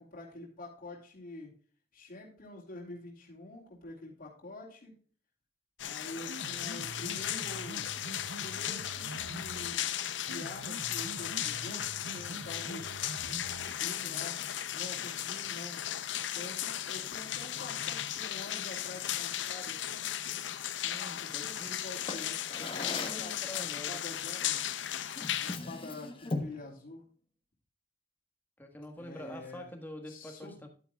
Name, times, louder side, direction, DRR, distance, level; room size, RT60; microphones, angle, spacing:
voice 1, 0.0-1.5 1.9-4.9 5.8-7.9 8.4-9.9 10.2-14.5 14.7-15.8 16.3-20.1 21.2-22.4 22.9-24.6 25.4-27.0 29.0-29.7 30.1-30.6, left 2 dB, 50° left, -3 dB, 2.5 m, -47 dB
sound 1, 5.8-25.6, left 11 dB, 80° left, 0.6 m, -36 dB
Piano, 6.1-14.1, right 2 dB, 80° right, 0.7 m, -46 dB
voice 2, 20.8-21.7 22.6-24.0 28.6-30.7, left 1 dB, 10° left, 4 dB, 1.6 m, -46 dB
Drawer open or close, 22.1-23.3 24.5-24.7 25.2-26.6, left 2 dB, 30° left, 1.2 m, -38 dB
11.0 x 8.6 x 2.3 m, 0.43 s
head